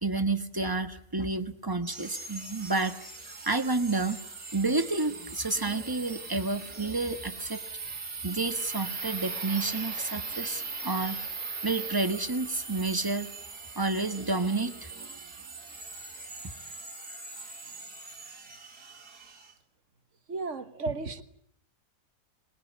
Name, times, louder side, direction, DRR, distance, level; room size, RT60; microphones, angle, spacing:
voice 1, 0.0-3.0 3.2-4.2 4.5-7.6 8.2-11.2 11.6-13.3 13.7-14.9, right 3 dB, 15° right, 1.3 m, -30 dB
sound 1, 1.8-19.5, right 4 dB, 80° right, 3.5 m, -40 dB
voice 2, 20.3-21.2, right 3 dB, 50° right, 1.8 m, -33 dB
25.5 x 21.5 x 9.3 m
omnidirectional pair, 1.7 m